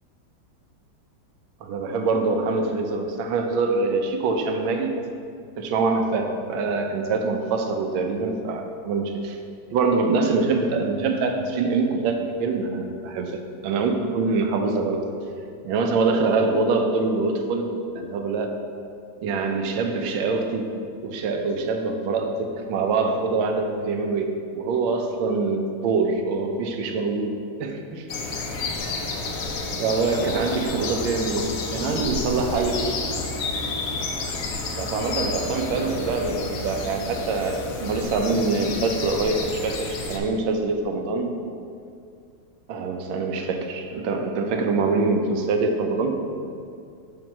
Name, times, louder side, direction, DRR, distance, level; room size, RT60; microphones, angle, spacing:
voice 1, 1.6-4.9 5.6-9.4 9.7-15.0 15.6-17.7 17.9-18.5 19.2-20.8 21.0-28.1 29.8-32.8 34.8-41.4 42.7-46.2, right 3 dB, 80° right, 4 dB, 1.4 m, -24 dB
sound 1, 28.1-40.2, left 3 dB, 65° left, 0.8 m, -30 dB
7.2 x 2.9 x 5.8 m, 2.4 s
omnidirectional pair, 2.2 m